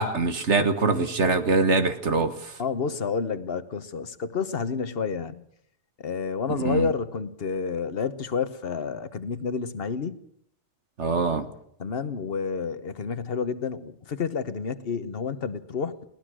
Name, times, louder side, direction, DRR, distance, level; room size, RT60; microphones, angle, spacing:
voice 1, 0.0-2.5 6.6-6.9 11.0-11.5, right 3 dB, 60° right, 9 dB, 1.6 m, -23 dB
voice 2, 2.6-5.4 6.0-10.2 11.8-16.1, left 5 dB, 50° left, 12 dB, 1.3 m, -30 dB
22.5 x 18.5 x 6.3 m, 0.69 s
omnidirectional pair, 1.4 m